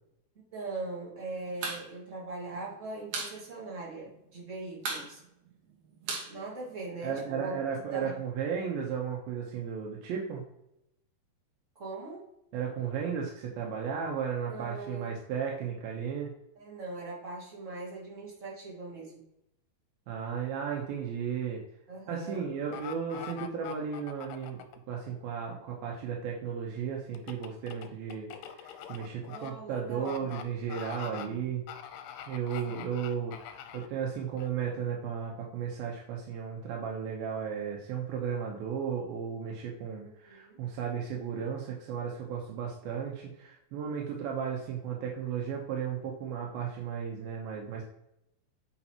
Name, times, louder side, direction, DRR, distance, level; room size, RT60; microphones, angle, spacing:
voice 1, 0.5-5.2 6.3-8.1 11.7-12.3 14.5-15.1 16.5-19.2 21.9-22.4 29.3-30.3 31.0-31.4 32.6-33.0 40.3-40.6, right 3 dB, 35° right, -4 dB, 1.3 m, -41 dB
sound 1, 1.6-1.8 2.1-2.2 2.5-3.4 3.7-3.8 4.1-4.5 4.8-7.2, right 3 dB, 60° right, 2.6 m, -36 dB
voice 2, 7.0-10.4 12.5-16.3 20.1-21.6 22.1-28.3 28.6-31.6 32.3-47.8, right 7 dB, 80° right, -1 dB, 2.7 m, -35 dB
sound 2, 22.7-24.8 27.1-29.5 30.0-30.4 30.7-31.3 31.7-33.9 34.4-34.5, left 10 dB, 80° left, 2.2 m, -43 dB
8.4 x 5.7 x 2.9 m, 0.82 s
omnidirectional pair, 4.2 m